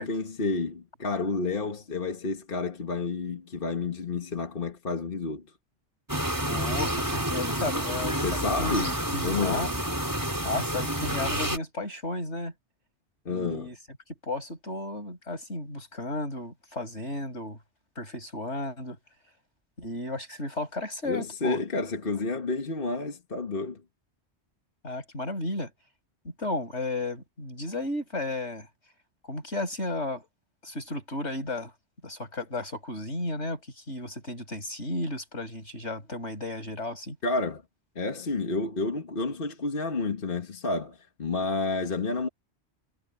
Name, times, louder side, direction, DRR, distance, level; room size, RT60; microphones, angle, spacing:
voice 1, 0.0-5.4 8.2-8.9 9.2-9.7 13.3-13.7 21.1-23.8 37.2-37.6 38.0-42.3, left 3 dB, 50° left, 1.8 m, -30 dB
sound 1, 6.1-11.6, right 1 dB, 15° right, 4.1 m, -29 dB
voice 2, 6.4-9.7 10.4-12.5 13.3-13.7 14.2-17.6 18.0-19.0 19.8-21.6 24.8-25.7 26.4-28.7 29.3-30.3 30.6-31.7 32.0-37.2, left 2 dB, 85° left, 8.3 m, -33 dB
omnidirectional pair, 1.1 m